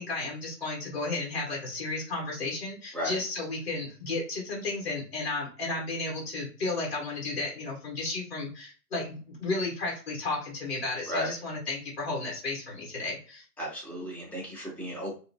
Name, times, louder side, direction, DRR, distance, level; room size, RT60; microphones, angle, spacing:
voice 1, 0.0-13.4, left 3 dB, 40° left, -2 dB, 0.9 m, -33 dB
voice 2, 13.6-15.1, equal, 5° left, -21 dB, 0.8 m, -34 dB
2.8 x 2.2 x 2.5 m, 0.37 s
hypercardioid pair, 165°, 50 cm